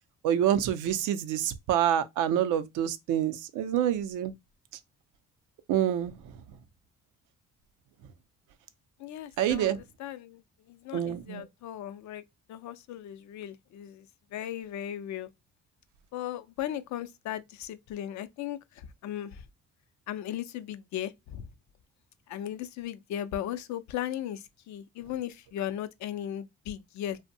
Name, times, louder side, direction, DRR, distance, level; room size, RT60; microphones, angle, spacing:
voice 1, 0.2-4.3 5.7-6.1 9.4-9.8 10.9-11.4, right 10 dB, 85° right, 0.5 m, -27 dB
voice 2, 9.0-12.2 12.5-15.3 16.1-19.4 20.1-21.5 22.3-27.2, left 11 dB, 70° left, 0.4 m, -37 dB
2.6 x 2.1 x 2.6 m
cardioid pair, 90°, 30 cm